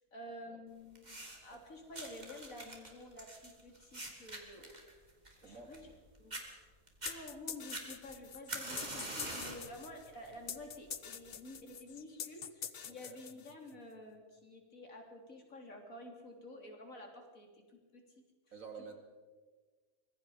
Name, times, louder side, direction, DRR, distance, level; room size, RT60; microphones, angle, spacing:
voice 1, 0.0-4.7 5.4-5.9 6.2-6.7 7.1-18.5, left 1 dB, 65° left, 2 dB, 3.7 m, -51 dB
sound 1, 1.0-1.6 1.9-6.0 6.3-6.4 6.9-7.2 7.7-9.7 10.1-10.5 11.3-11.4, right 1 dB, 30° right, 2.9 m, -44 dB
sound 2, 7.1-13.8, left 7 dB, 45° left, 0.9 m, -45 dB
voice 2, 12.9-13.2 18.5-18.9, right 5 dB, 65° right, 4 dB, 2.8 m, -51 dB
25.0 x 21.5 x 5.0 m, 1.4 s
omnidirectional pair, 1.5 m